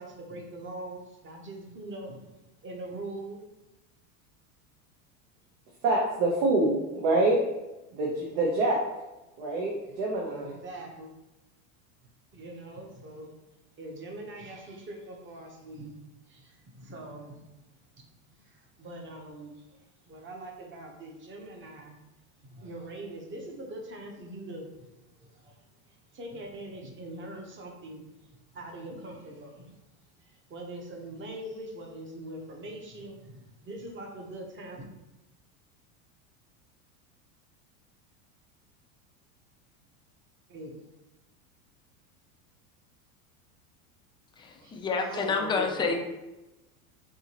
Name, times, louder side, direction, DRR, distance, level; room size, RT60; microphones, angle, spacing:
voice 1, 0.0-2.2 2.6-3.4 10.3-11.1 12.3-13.3 13.8-17.4 17.9-22.0 22.4-34.9 40.5-40.9, right 1 dB, 25° right, 1 dB, 0.9 m, -43 dB
voice 2, 5.8-7.4 7.9-8.8 9.4-10.5 44.6-44.7 45.1-45.9, right 2 dB, 70° right, -2 dB, 1.0 m, -27 dB
voice 3, 44.4-46.0, left 4 dB, 10° left, 1 dB, 0.4 m, -28 dB
4.7 x 2.9 x 2.9 m, 1.0 s
supercardioid pair, 110°, 44 cm